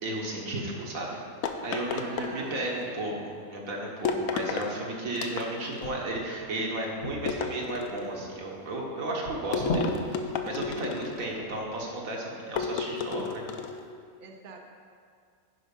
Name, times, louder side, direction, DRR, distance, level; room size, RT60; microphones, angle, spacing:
voice 1, 0.0-1.2 1.6-13.4, right 1 dB, 85° right, -1 dB, 1.7 m, -34 dB
sound 1, 1.4-2.8 4.1-4.7 5.2-5.8 7.3-8.2 9.5-11.3 12.6-13.8, left 5 dB, 85° left, 1.0 m, -32 dB
voice 2, 1.9-3.2 11.4-11.6 14.2-14.6, right 3 dB, 45° right, 1 dB, 0.9 m, -45 dB
sound 2, 5.8-12.1, left 1 dB, 55° left, 1.2 m, -38 dB
10.5 x 4.8 x 5.3 m, 2.2 s
omnidirectional pair, 1.4 m